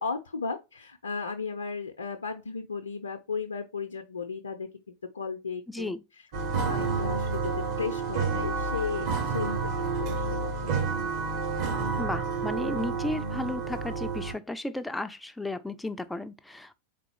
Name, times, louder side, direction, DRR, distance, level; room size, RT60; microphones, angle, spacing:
voice 1, 0.0-5.9 6.4-10.8, left 5 dB, 75° left, 0.5 m, -35 dB
voice 2, 5.7-6.0 12.0-16.8, left 2 dB, 5° left, 0.4 m, -34 dB
sound 1, 6.3-14.3, right 4 dB, 45° right, 1.4 m, -30 dB
4.0 x 3.6 x 2.8 m
figure-of-eight pair, 90°, 0 cm